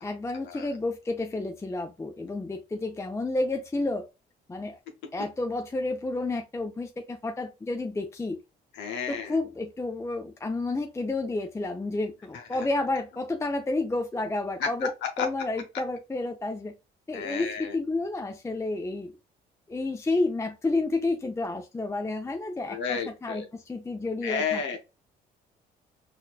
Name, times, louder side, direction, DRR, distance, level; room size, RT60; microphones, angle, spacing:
voice 1, 0.0-4.1 4.5-4.8 5.1-8.4 9.1-14.9 15.2-16.7 17.1-19.1 19.7-24.8, left 2 dB, 15° left, 0.5 m, -30 dB
voice 2, 8.8-9.3 14.6-14.7 15.2-15.3 17.1-17.7 22.7-23.5 24.2-24.8, left 6 dB, 80° left, 0.9 m, -31 dB
4.2 x 2.6 x 2.4 m
cardioid pair, 80°, 18 cm